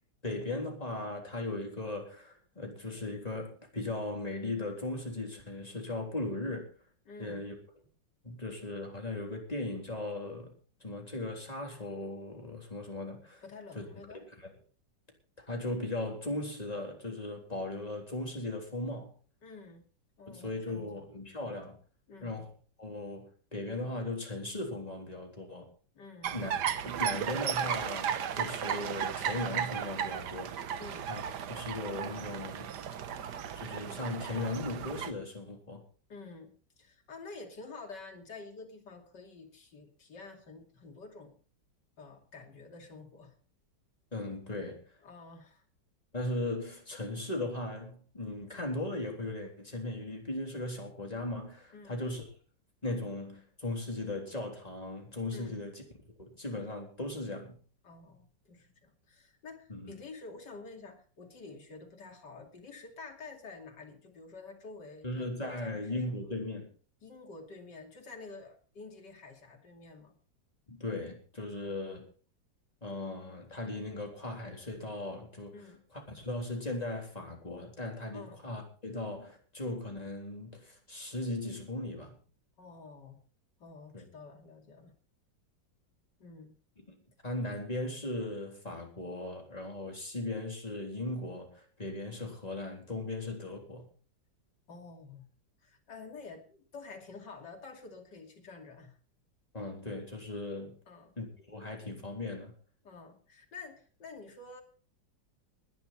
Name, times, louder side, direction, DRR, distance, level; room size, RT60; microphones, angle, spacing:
voice 1, 0.2-6.7 7.2-7.5 8.2-10.6 10.8-13.4 13.8-13.9 15.5-19.1 20.3-21.8 22.2-22.5 22.8-25.7 26.3-26.5 26.8-30.5 31.1-31.2 31.5-32.7 33.6-35.8 44.1-44.8 46.1-52.2 52.8-55.8 56.2-57.6 59.7-59.9 65.0-66.7 70.7-72.1 72.8-75.5 76.1-82.2 83.9-84.1 87.2-93.9 99.5-100.8 101.2-102.5, left 2 dB, 20° left, 1 dB, 3.8 m, -38 dB
voice 2, 7.0-7.4 13.4-14.2 19.4-19.8 20.2-21.0 22.1-22.4 25.9-26.4 30.8-31.1 36.1-41.4 42.0-43.3 45.0-45.6 51.7-52.0 55.3-55.6 57.8-66.2 67.0-70.2 71.6-72.0 75.5-75.8 78.1-78.4 82.6-83.2 83.6-84.9 86.2-86.5 94.7-95.3 95.6-99.0 100.9-101.1 102.8-104.6, left 3 dB, 70° left, 3 dB, 3.3 m, -49 dB
sound 1, 26.2-35.1, right 8 dB, 70° right, 1.5 m, -35 dB
20.0 x 10.5 x 4.3 m, 0.40 s
omnidirectional pair, 1.9 m